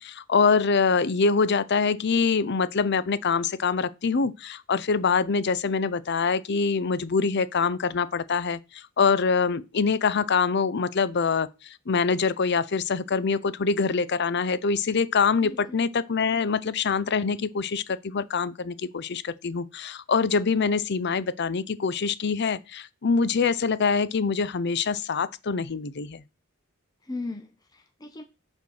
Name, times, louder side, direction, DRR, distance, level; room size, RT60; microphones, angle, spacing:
voice 1, 0.0-26.2, left 5 dB, 55° left, 0.6 m, -25 dB
voice 2, 15.4-15.8 27.0-28.2, left 2 dB, 20° left, 0.8 m, -37 dB
8.4 x 4.5 x 6.3 m
head